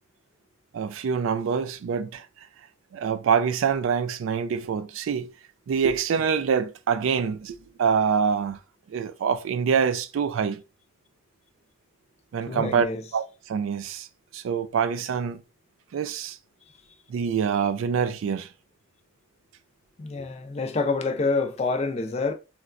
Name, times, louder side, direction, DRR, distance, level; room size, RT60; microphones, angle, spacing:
voice 1, 0.7-2.5 2.9-5.3 5.7-8.6 8.9-10.6 12.3-12.9 13.1-14.1 14.3-15.4 15.9-16.4 17.1-18.5, right 6 dB, 75° right, 0.3 m, -25 dB
voice 2, 12.5-13.0 20.0-22.3, left 3 dB, 30° left, 0.3 m, -27 dB
3.9 x 2.2 x 2.3 m
head